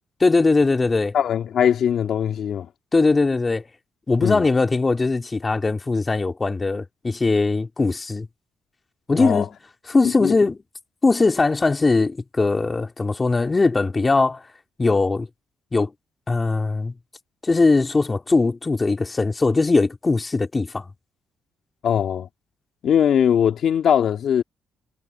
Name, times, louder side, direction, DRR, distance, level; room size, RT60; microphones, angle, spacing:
voice 1, 0.2-1.2 2.9-3.7 4.1-8.3 9.1-9.5 9.9-10.6 11.0-14.4 14.8-15.3 15.7-15.9 16.3-16.9 17.4-20.9, left 3 dB, 25° left, 3.1 m, -20 dB
voice 2, 1.1-2.7 4.2-4.5 9.2-9.5 10.0-10.3 21.8-22.3 22.8-24.4, left 9 dB, 65° left, 2.5 m, -20 dB
cardioid pair, 90°, 0 cm